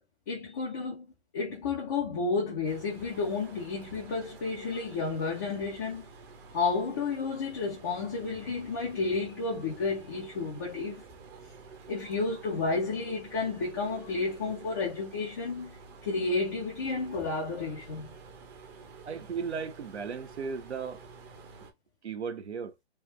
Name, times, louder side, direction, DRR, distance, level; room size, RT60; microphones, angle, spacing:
voice 1, 0.3-1.1 1.3-6.1 6.5-11.0 11.9-18.1, left 4 dB, 15° left, 0.3 m, -31 dB
sound 1, 2.6-21.7, right 5 dB, 25° right, 0.6 m, -50 dB
voice 2, 19.1-21.0 22.0-22.7, right 6 dB, 85° right, 0.9 m, -36 dB
3.3 x 2.3 x 3.0 m
hypercardioid pair, 145°, 33 cm